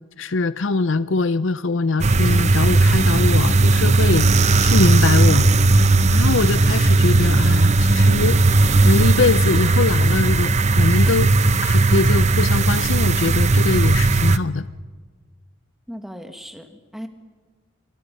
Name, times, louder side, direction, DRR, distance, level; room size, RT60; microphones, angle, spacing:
voice 1, 0.2-4.3 4.6-5.5 6.1-8.4 8.8-10.5 10.8-11.3 11.6-14.7, left 3 dB, 60° left, 15 dB, 0.6 m, -22 dB
sound 1, 2.0-14.4, right 2 dB, 30° right, 0.8 m, -16 dB
voice 2, 15.9-17.1, equal, ahead, 6 dB, 1.8 m, -37 dB
28.5 x 24.5 x 5.5 m, 1.5 s
head